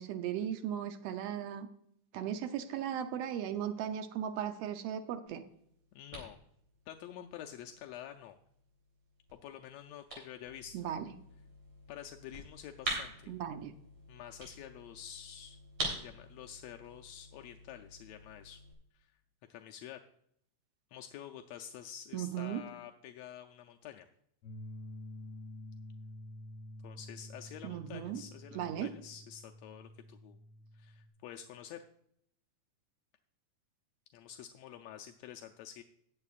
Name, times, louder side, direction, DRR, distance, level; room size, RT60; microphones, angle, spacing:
voice 1, 0.0-1.7 2.1-5.4 10.7-11.1 13.3-13.7 22.1-22.6 27.6-28.2 28.5-28.9, right 9 dB, 80° right, 7 dB, 1.4 m, -37 dB
sound 1, 5.3-18.7, right 2 dB, 55° right, 4.7 m, -46 dB
voice 2, 5.9-6.4 6.9-8.4 9.3-10.8 11.9-13.3 14.1-18.6 18.9-19.1 19.5-20.0 20.9-24.1 26.8-30.4 30.7-31.8 34.1-35.8, left 10 dB, 80° left, 4 dB, 1.5 m, -48 dB
sound 2, 24.4-31.1, left 1 dB, 55° left, 2.0 m, -49 dB
19.0 x 7.7 x 2.4 m, 0.71 s
omnidirectional pair, 3.6 m